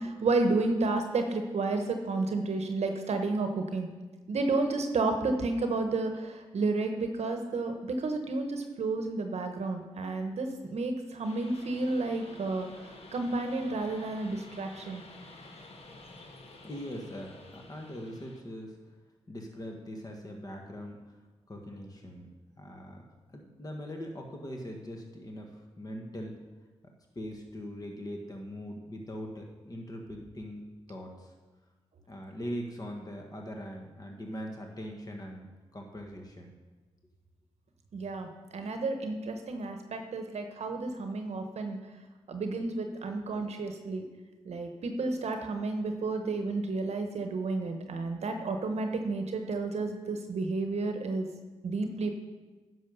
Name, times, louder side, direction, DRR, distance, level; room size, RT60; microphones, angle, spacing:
voice 1, 0.0-3.9 4.3-15.0 37.9-41.8 42.3-44.0 44.4-51.3 51.6-52.1, right 3 dB, 65° right, 6 dB, 0.9 m, -31 dB
sound 1, 11.2-18.4, left 2 dB, 55° left, 1.4 m, -51 dB
voice 2, 16.6-18.8 19.3-21.1 21.5-22.3 22.6-26.4 27.1-30.6 30.9-31.3 32.1-36.5, equal, 30° left, 2 dB, 1.5 m, -41 dB
10.0 x 6.3 x 5.4 m, 1.3 s
cardioid pair, 55°, 12 cm